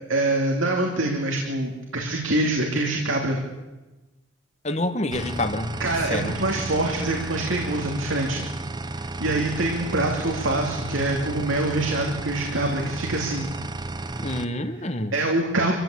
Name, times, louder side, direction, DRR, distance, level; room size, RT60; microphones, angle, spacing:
voice 1, 0.1-3.4 5.8-8.4 9.2-13.5 15.1-15.7, right 2 dB, 85° right, 1 dB, 2.9 m, -25 dB
voice 2, 4.6-6.4 14.2-15.1, left 1 dB, 35° left, 9 dB, 1.4 m, -28 dB
sound 1, 5.1-14.5, right 2 dB, 20° right, 0.8 m, -33 dB
25.5 x 15.5 x 8.5 m, 1.1 s
head